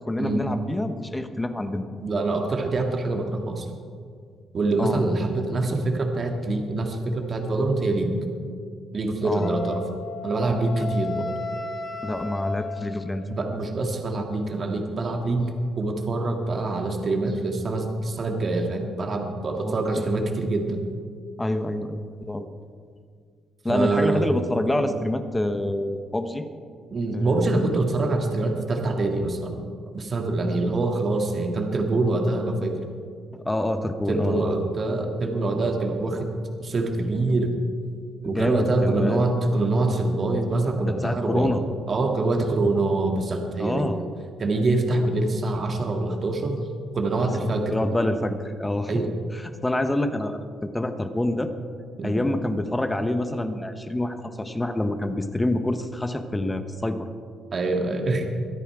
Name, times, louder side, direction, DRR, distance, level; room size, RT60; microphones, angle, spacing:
voice 1, 0.1-1.8 4.8-5.0 9.2-9.5 10.8-10.9 12.0-13.2 19.5-20.1 21.4-22.5 23.6-26.4 27.1-27.7 33.3-34.5 38.2-39.2 40.9-41.6 43.6-44.0 47.2-48.9 49.3-51.5 52.0-57.1, left 1 dB, 15° left, 8 dB, 1.1 m, -27 dB
voice 2, 2.0-3.7 4.5-8.2 8.9-9.8 10.2-11.3 13.3-20.8 23.7-24.3 24.8-24.9 26.9-29.6 29.9-32.8 34.1-36.3 36.6-37.5 38.2-41.5 41.9-43.9 44.4-46.6 46.9-47.7 48.9-49.1 52.0-52.2 57.5-58.3, right 2 dB, 45° right, 3 dB, 1.9 m, -25 dB
Wind instrument woodwind instrument, 9.4-13.4, left 3 dB, 55° left, 1.9 m, -34 dB
23.0 x 10.0 x 4.8 m, 2.1 s
cardioid pair, 90°, 0 cm